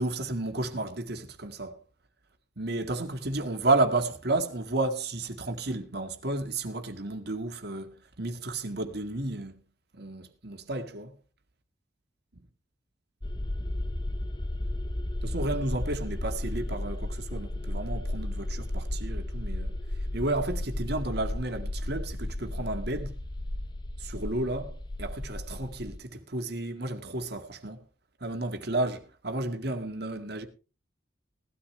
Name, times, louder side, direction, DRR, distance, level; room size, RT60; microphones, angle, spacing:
voice 1, 0.0-1.8 2.6-9.6 9.9-11.1 15.2-19.7 20.1-23.2 24.0-27.8 28.2-30.5, right 2 dB, 55° right, 2.0 m, -32 dB
sound 1, 13.2-26.0, left 1 dB, 25° left, 0.8 m, -34 dB
18.5 x 13.0 x 3.3 m
head